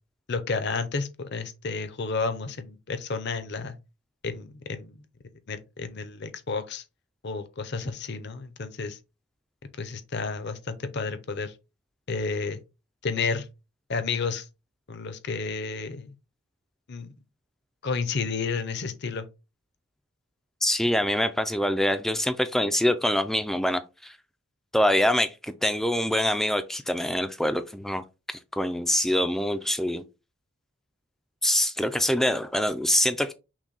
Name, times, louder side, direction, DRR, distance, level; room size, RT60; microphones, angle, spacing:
voice 1, 0.3-3.8 4.2-5.0 5.5-6.8 7.2-9.0 9.8-11.5 12.1-12.6 13.0-13.5 13.9-14.5 14.9-16.1 16.9-17.1 17.8-19.3, left 4 dB, 50° left, 0.6 m, -31 dB
voice 2, 20.6-24.2 24.7-30.0 31.4-33.3, left 1 dB, ahead, 0.3 m, -25 dB
6.0 x 2.2 x 4.0 m
head